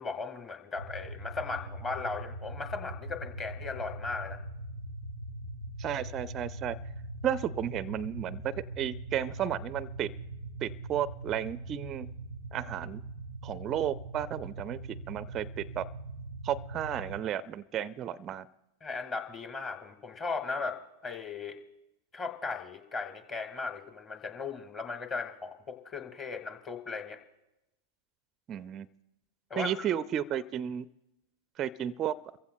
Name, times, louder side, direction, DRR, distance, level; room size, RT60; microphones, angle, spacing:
voice 1, 0.0-4.4 18.8-21.6 22.1-27.2 29.5-29.7, left 4 dB, 25° left, 6 dB, 1.6 m, -37 dB
sound 1, 0.8-17.2, right 2 dB, 80° left, 1.2 m, -42 dB
voice 2, 5.8-6.7 7.2-8.4 8.8-10.1 10.6-12.1 12.5-13.0 13.4-14.8 15.1-15.8 16.4-18.5 28.5-28.9 29.6-30.9 31.6-32.1, right 10 dB, 30° right, 17 dB, 0.4 m, -33 dB
28.5 x 15.0 x 2.2 m, 0.94 s
figure-of-eight pair, 95°, 0 cm